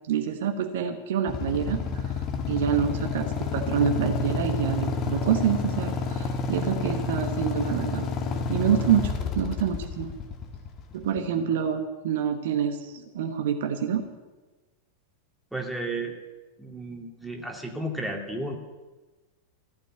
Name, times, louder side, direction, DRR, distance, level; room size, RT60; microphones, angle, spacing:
voice 1, 0.1-2.1 2.5-8.1 8.5-10.1 10.9-14.0, right 8 dB, 55° right, 6 dB, 1.2 m, -27 dB
Motorcycle / Idling, 1.3-11.2, left 4 dB, 35° left, 1.7 m, -29 dB
voice 2, 15.5-16.1 16.6-18.6, right 1 dB, 5° right, 1 dB, 2.5 m, -33 dB
14.5 x 8.3 x 9.6 m, 1.2 s
figure-of-eight pair, 90°, 0 cm